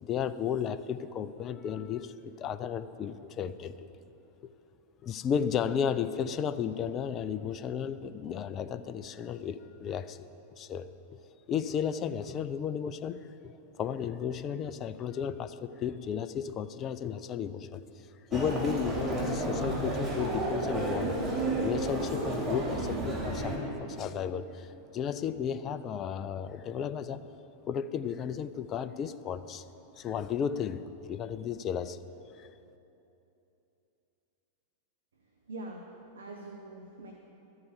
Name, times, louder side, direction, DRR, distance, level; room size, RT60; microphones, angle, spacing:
voice 1, 0.0-3.7 5.0-10.2 10.5-10.9 11.5-17.8 18.3-27.2 27.7-29.6 30.0-32.0 32.4-32.5, left 8 dB, 30° left, 12 dB, 0.4 m, -34 dB
Human voice, 18.3-23.6, right 2 dB, 25° right, 2.8 m, -31 dB
voice 2, 35.5-35.9 36.2-37.1, right 2 dB, 70° right, 2 dB, 0.8 m, -43 dB
13.0 x 4.8 x 8.3 m, 3.0 s
figure-of-eight pair, 90°, 0 cm